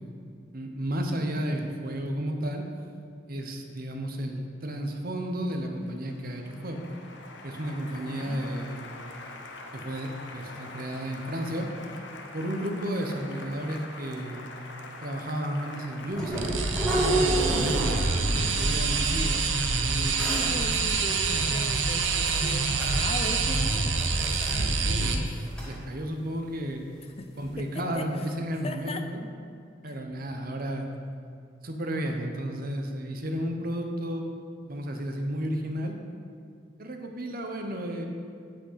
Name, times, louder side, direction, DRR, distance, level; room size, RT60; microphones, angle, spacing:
voice 1, 0.5-2.7 3.3-6.8 7.4-8.8 9.7-11.7 12.3-14.4 15.0-20.3 21.3-21.5 24.5-26.9 27.4-29.3 29.8-30.9 31.6-34.3 34.6-36.0 36.8-38.1, equal, 50° right, 4 dB, 1.1 m, -33 dB
Applause, 5.5-24.4, left 2 dB, 70° left, 1.0 m, -44 dB
voice 2, 7.7-8.4 17.5-18.8 20.2-24.0 27.2-27.3 27.6-28.2 28.6-29.1 29.9-30.0, left 2 dB, 35° left, 7 dB, 0.6 m, -39 dB
sound 1, 16.1-18.2 18.5-19.0 19.8-19.9 20.2-20.5 21.3-21.4 21.9-23.0 23.2-23.5 23.9-24.5 24.8-24.9 25.3-25.7 27.4-27.5 27.9-28.0, right 1 dB, 5° left, 2.8 m, -30 dB
sound 2, 16.3-25.1, right 4 dB, 80° right, 0.9 m, -26 dB
8.2 x 6.4 x 8.1 m, 2.3 s
head